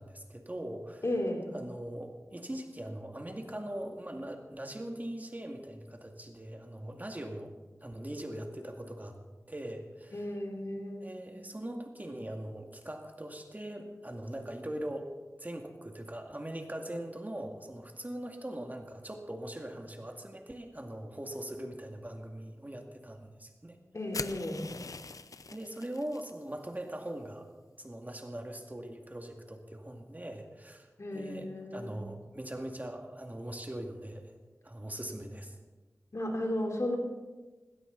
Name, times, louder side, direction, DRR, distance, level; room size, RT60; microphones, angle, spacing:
voice 1, 0.0-1.0 1.5-7.5 7.8-9.2 9.5-10.3 11.0-15.1 15.4-23.8 25.5-27.5 27.8-34.3 34.6-35.6, right 1 dB, 30° right, 3 dB, 2.2 m, -41 dB
voice 2, 1.0-1.5 10.1-11.1 23.9-24.7 31.0-31.9 36.1-37.0, left 1 dB, 60° left, 1 dB, 3.6 m, -34 dB
sound 1, 24.1-26.3, left 4 dB, 85° left, 0.6 m, -42 dB
19.5 x 17.0 x 4.0 m, 1.2 s
wide cardioid pair, 40°, 6 cm